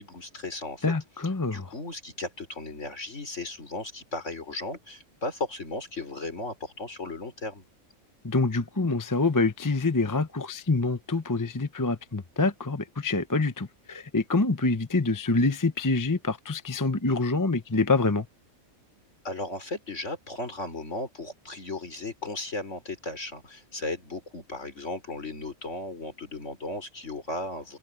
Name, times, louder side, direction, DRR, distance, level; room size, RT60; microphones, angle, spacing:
voice 1, 0.0-0.9 1.5-7.6 19.2-27.8, left 2 dB, 60° left, 4.9 m, -36 dB
voice 2, 0.8-1.6 8.2-18.3, left 3 dB, 15° left, 0.7 m, -26 dB
omnidirectional pair, 1.4 m